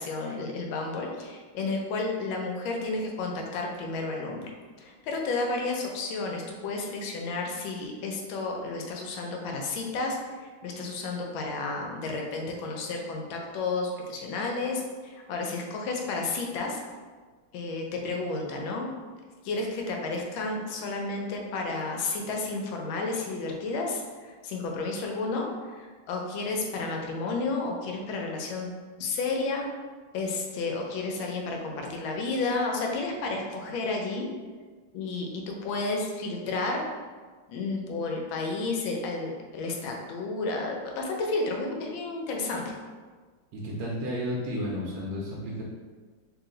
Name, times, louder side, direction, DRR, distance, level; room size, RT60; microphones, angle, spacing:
voice 1, 0.0-4.5 4.8-16.8 17.5-18.9 19.4-28.7 29.0-29.7 30.1-34.3 34.9-36.9 37.5-42.7, left 3 dB, 85° left, 1 dB, 1.4 m, -32 dB
voice 2, 43.5-45.6, equal, 80° right, -4 dB, 1.4 m, -32 dB
3.2 x 2.9 x 3.7 m, 1.5 s
omnidirectional pair, 2.1 m